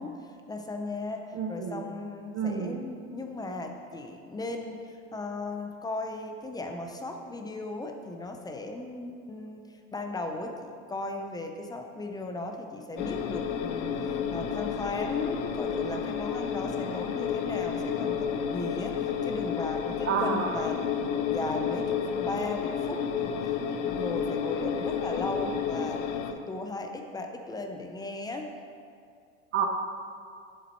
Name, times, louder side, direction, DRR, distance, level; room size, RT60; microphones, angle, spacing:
voice 1, 0.0-28.5, left 2 dB, 10° left, 4 dB, 0.5 m, -37 dB
voice 2, 1.3-1.8 2.3-2.8 20.0-20.5 29.5-29.7, right 6 dB, 35° right, 4 dB, 0.8 m, -29 dB
sound 1, 13.0-26.3, left 7 dB, 70° left, 0.8 m, -31 dB
sound 2, 13.9-16.1, right 1 dB, 50° right, 2.1 m, -47 dB
8.4 x 7.3 x 4.4 m, 2.3 s
supercardioid pair, 125°, 38 cm